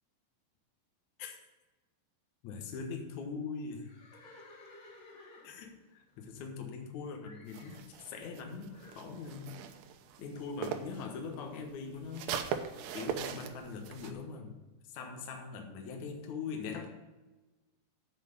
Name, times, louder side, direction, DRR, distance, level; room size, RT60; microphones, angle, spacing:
voice 1, 2.4-4.0 5.4-9.5 10.2-12.4 12.9-14.6 14.9-16.9, left 5 dB, 90° left, 3 dB, 1.6 m, -42 dB
Livestock farm animals working animals, 3.8-6.9 7.2-7.9 8.7-9.1, left 2 dB, 50° left, 3.2 m, -56 dB
sound 1, 7.5-11.0 11.3-14.1, right 8 dB, 85° right, 2.3 m, -40 dB
9.0 x 6.0 x 7.0 m, 1.2 s
omnidirectional pair, 5.6 m